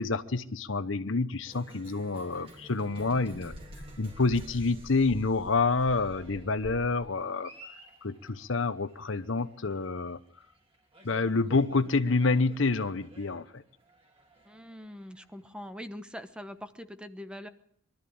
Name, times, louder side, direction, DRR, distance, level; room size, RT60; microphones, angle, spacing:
voice 1, 0.0-3.5 4.0-7.5 8.0-10.2 11.0-13.6, left 3 dB, 70° left, 13 dB, 0.9 m, -28 dB
Cheering, 1.5-16.6, right 1 dB, 30° right, 3.7 m, -54 dB
sound 1, 2.9-6.9, equal, 65° right, 7.6 m, -47 dB
voice 2, 14.4-17.5, equal, 5° right, 10 dB, 1.1 m, -43 dB
23.0 x 13.0 x 8.6 m, 0.66 s
head